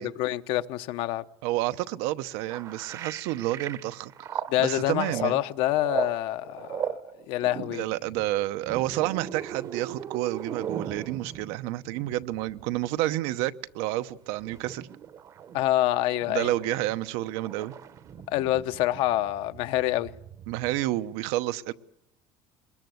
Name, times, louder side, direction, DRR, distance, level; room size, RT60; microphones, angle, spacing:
voice 1, 0.0-1.2 4.5-7.0 7.3-7.9 15.5-16.5 18.3-20.1, left 14 dB, 65° left, 0.9 m, -26 dB
voice 2, 1.4-5.4 7.7-14.9 16.3-17.7 20.5-21.7, right 15 dB, 90° right, 0.9 m, -30 dB
sound 1, 2.5-12.8 14.1-20.8, right 9 dB, 35° right, 0.8 m, -39 dB
23.0 x 21.0 x 8.0 m
cardioid pair, 175°, 10 cm